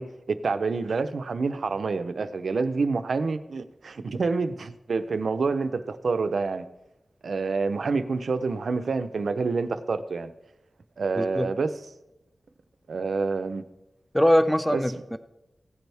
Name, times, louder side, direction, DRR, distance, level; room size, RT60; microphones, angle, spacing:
voice 1, 0.0-6.7 7.2-10.3 11.0-11.7 12.9-13.6 14.7-14.8, right 4 dB, 80° right, 0.7 m, -27 dB
voice 2, 11.2-11.5 14.1-15.2, equal, 5° left, 0.6 m, -22 dB
16.5 x 10.5 x 3.5 m
wide cardioid pair, 85°, 0 cm